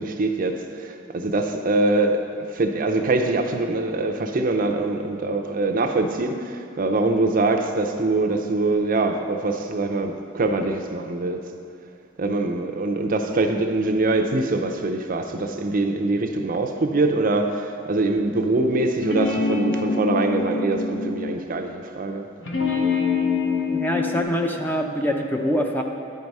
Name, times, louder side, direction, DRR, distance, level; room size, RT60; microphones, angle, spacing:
voice 1, 0.0-11.4 12.2-22.3, right 2 dB, 45° right, 0.5 m, -23 dB
sound 1, 19.0-21.4 22.4-24.2, left 4 dB, 65° left, 1.0 m, -25 dB
voice 2, 23.7-25.8, equal, 10° left, 0.4 m, -24 dB
9.5 x 4.6 x 5.3 m
head